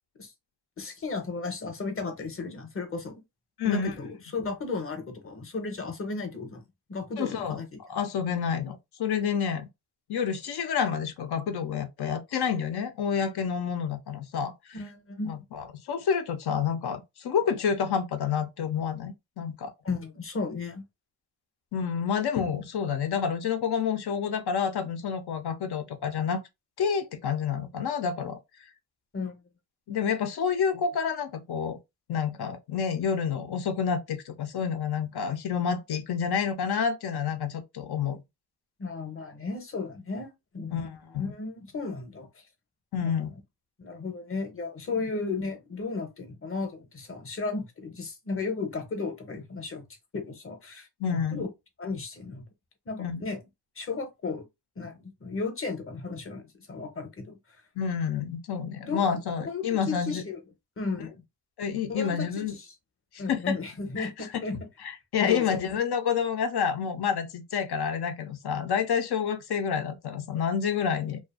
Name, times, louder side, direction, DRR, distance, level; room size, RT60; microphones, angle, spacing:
voice 1, 0.8-3.1 3.6-6.6 6.9-7.8 14.7-15.4 19.8-20.8 29.1-29.4 38.8-42.3 43.0-43.2 43.8-49.8 50.1-51.5 51.8-52.4 52.9-53.4 53.8-54.5 54.8-57.4 58.8-60.4 60.8-61.2 61.9-62.7 63.2-64.7 65.2-65.6, left 4 dB, 30° left, 0.8 m, -34 dB
voice 2, 3.6-3.9 7.2-9.7 10.1-14.8 15.3-19.7 21.7-26.4 26.8-28.4 29.9-31.8 32.1-38.2 40.7-40.9 41.1-41.3 42.9-43.3 44.9-45.0 51.0-51.4 53.0-53.3 57.8-60.2 61.6-62.5 63.1-63.5 64.0-64.4 64.8-71.2, left 7 dB, 60° left, 0.6 m, -29 dB
2.5 x 2.4 x 2.4 m
cardioid pair, 95°, 45 cm